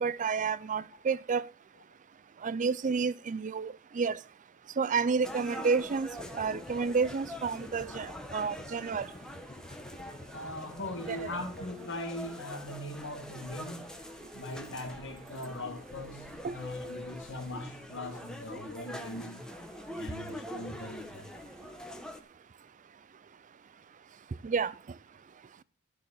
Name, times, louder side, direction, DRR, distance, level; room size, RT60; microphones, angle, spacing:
voice 1, 0.0-1.5 2.4-4.2 4.8-6.1 6.3-9.1 11.1-11.3 16.4-16.6 24.4-24.7, right 5 dB, 35° right, 0.4 m, -30 dB
sound 1, 5.2-22.2, left 1 dB, 5° left, 1.1 m, -44 dB
sound 2, 6.2-11.7, left 2 dB, 25° left, 0.9 m, -50 dB
voice 2, 10.3-13.9 14.3-19.5 19.9-21.3, left 1 dB, 60° left, 2.2 m, -40 dB
13.0 x 5.0 x 8.3 m
head